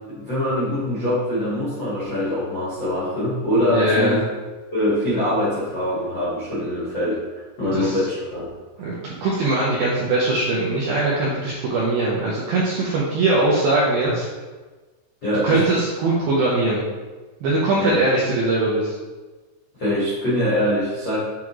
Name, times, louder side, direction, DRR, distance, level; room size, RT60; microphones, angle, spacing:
voice 1, 0.1-4.2 4.7-7.2 7.6-8.5 14.0-14.1 15.2-15.6 16.0-16.1 17.7-18.0 19.8-21.3, equal, 60° left, -9 dB, 1.1 m, -23 dB
voice 2, 3.7-4.3 7.7-8.1 8.8-14.3 15.4-16.8 17.4-19.0, right 2 dB, 80° right, -6 dB, 2.1 m, -21 dB
8.9 x 3.6 x 3.1 m, 1.3 s
omnidirectional pair, 5.3 m